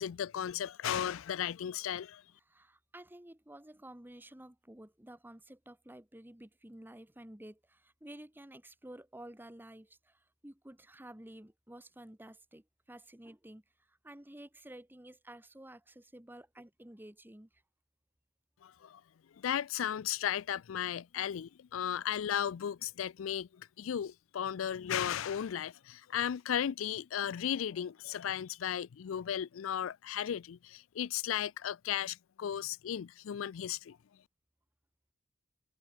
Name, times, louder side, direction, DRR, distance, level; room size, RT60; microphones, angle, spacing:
voice 1, 0.0-2.2 18.6-19.0 19.4-34.0, left 9 dB, 85° left, 0.4 m, -35 dB
voice 2, 2.5-13.6 13.9-17.5, right 1 dB, 10° right, 1.2 m, -52 dB
head